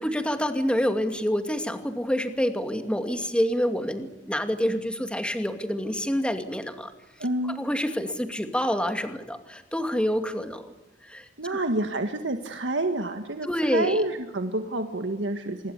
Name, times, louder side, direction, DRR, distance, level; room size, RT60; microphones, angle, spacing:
voice 1, 0.0-6.9 7.4-10.7 11.0-11.6 13.4-14.0, equal, 5° left, 7 dB, 2.4 m, -27 dB
voice 2, 7.2-7.6 11.4-15.7, right 2 dB, 80° right, 6 dB, 1.7 m, -28 dB
27.0 x 21.5 x 8.3 m, 0.98 s
head